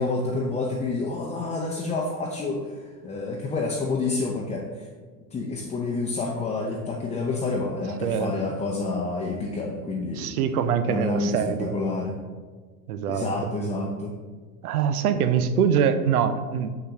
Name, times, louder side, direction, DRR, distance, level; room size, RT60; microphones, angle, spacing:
voice 1, 0.0-4.9 5.3-10.3 10.8-12.2 13.1-14.1, left 3 dB, 15° left, -1 dB, 0.7 m, -28 dB
voice 2, 8.0-8.5 10.2-11.8 12.9-13.5 14.6-16.7, right 7 dB, 75° right, 11 dB, 0.7 m, -24 dB
6.7 x 6.6 x 2.9 m, 1.5 s
hypercardioid pair, 90°, 45 cm